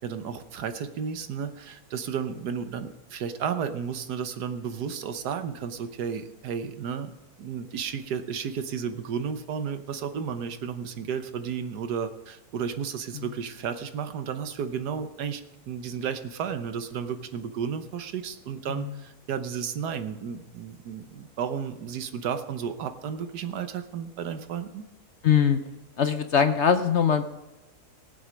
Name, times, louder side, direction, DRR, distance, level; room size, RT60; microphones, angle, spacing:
voice 1, 0.0-7.1 7.4-24.9, right 7 dB, 85° right, 9 dB, 1.5 m, -33 dB
voice 2, 18.7-19.0 25.2-25.6 26.0-27.2, left 7 dB, 55° left, 9 dB, 0.9 m, -22 dB
18.5 x 7.9 x 5.2 m, 1.0 s
omnidirectional pair, 1.7 m